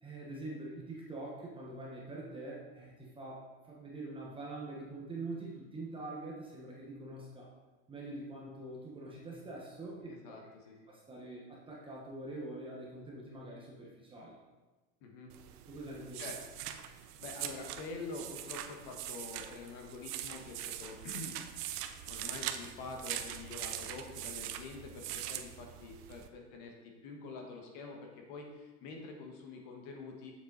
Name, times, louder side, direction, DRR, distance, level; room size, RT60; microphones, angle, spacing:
voice 1, 0.0-7.5 7.9-10.4 10.9-14.4 15.7-16.2, right 2 dB, 10° right, -4 dB, 1.0 m, -44 dB
voice 2, 10.0-10.9 15.0-15.3 16.2-16.4 17.2-21.5 22.1-26.7 27.0-30.3, left 3 dB, 40° left, 2 dB, 1.5 m, -46 dB
sound 1, 15.3-26.3, right 11 dB, 75° right, 0.8 m, -42 dB
7.4 x 7.2 x 4.0 m, 1.2 s
supercardioid pair, 155°, 47 cm